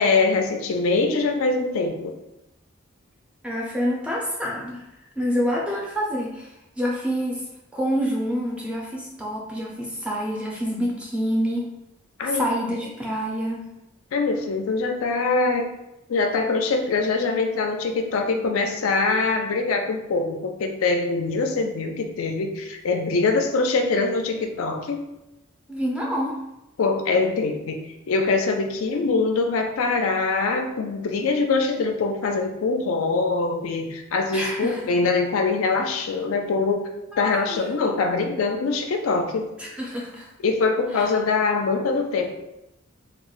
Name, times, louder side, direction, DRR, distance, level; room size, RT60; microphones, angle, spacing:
voice 1, 0.0-2.2 12.2-12.5 14.1-15.8 16.1-25.0 26.8-27.8 28.1-36.9 37.2-39.5 40.4-42.3, left 3 dB, 75° left, 4 dB, 0.4 m, -23 dB
voice 2, 3.4-4.8 5.2-6.5 6.8-7.4 7.7-11.7 12.2-13.7 25.7-26.4 34.3-34.9 37.1-37.8 39.6-40.3 40.9-41.1, equal, 5° right, -3 dB, 0.4 m, -27 dB
2.4 x 2.0 x 3.7 m, 0.90 s
head